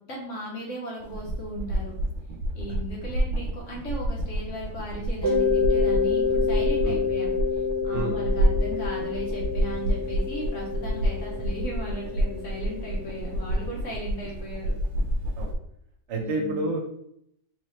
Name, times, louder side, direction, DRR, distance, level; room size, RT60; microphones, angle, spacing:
voice 1, 0.1-2.0 2.5-14.8 16.1-16.7, right 1 dB, 50° left, -3 dB, 1.0 m, -37 dB
sound 1, 1.0-15.5, equal, 85° right, 1.3 m, -29 dB
Mallet percussion, 5.2-13.8, left 5 dB, 15° left, 0.9 m, -28 dB
voice 2, 16.1-16.8, right 2 dB, 55° right, 1 dB, 0.8 m, -29 dB
3.9 x 3.0 x 3.0 m, 0.73 s
omnidirectional pair, 2.1 m